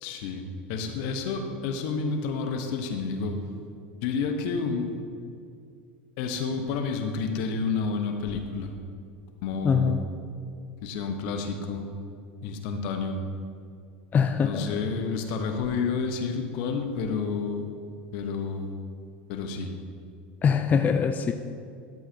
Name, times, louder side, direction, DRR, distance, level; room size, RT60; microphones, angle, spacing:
voice 1, 0.0-3.4 4.0-4.9 6.2-8.7 9.4-10.1 10.8-11.9 12.4-13.2 14.4-17.6 18.1-18.7 19.3-19.7, left 4 dB, 65° left, 5 dB, 1.0 m, -30 dB
voice 2, 9.6-10.0 14.1-14.7 20.4-21.3, left 6 dB, 30° left, 7 dB, 0.4 m, -23 dB
12.0 x 7.5 x 2.8 m, 2.4 s
hypercardioid pair, 95°, 6 cm